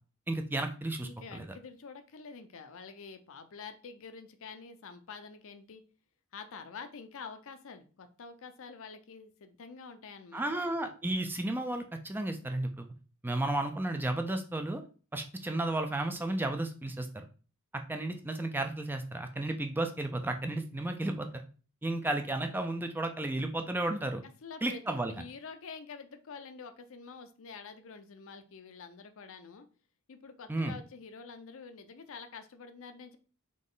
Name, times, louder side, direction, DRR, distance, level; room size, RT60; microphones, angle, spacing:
voice 1, 0.3-1.5 10.3-12.9 13.2-14.8 15.1-17.2 17.7-21.4 21.8-24.2 24.6-25.1 30.5-30.7, right 2 dB, 10° right, 6 dB, 0.3 m, -33 dB
voice 2, 1.0-5.8 6.3-10.7 24.4-29.7 30.1-33.2, left 5 dB, 60° left, 8 dB, 0.5 m, -47 dB
3.8 x 3.0 x 3.8 m, 0.38 s
head